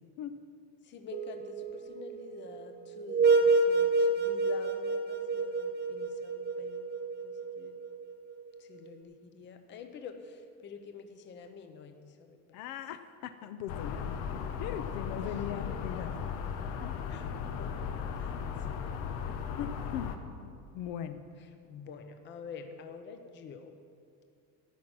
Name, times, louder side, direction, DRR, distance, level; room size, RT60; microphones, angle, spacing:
voice 1, 0.8-6.9 7.2-7.7 8.6-12.4 14.3-14.4 15.2-15.9 17.1-18.3 18.6-18.8 19.2-19.6 21.6-23.7, left 5 dB, 30° left, 7 dB, 0.8 m, -48 dB
sound 1, 1.1-8.5, right 3 dB, 25° right, 0.8 m, -29 dB
voice 2, 12.5-16.3 16.8-16.9 19.6-21.2, left 9 dB, 65° left, 10 dB, 0.8 m, -40 dB
sound 2, 13.7-20.2, left 7 dB, 90° left, 1.3 m, -36 dB
13.5 x 6.1 x 8.7 m, 2.5 s
cardioid pair, 175°, 40 cm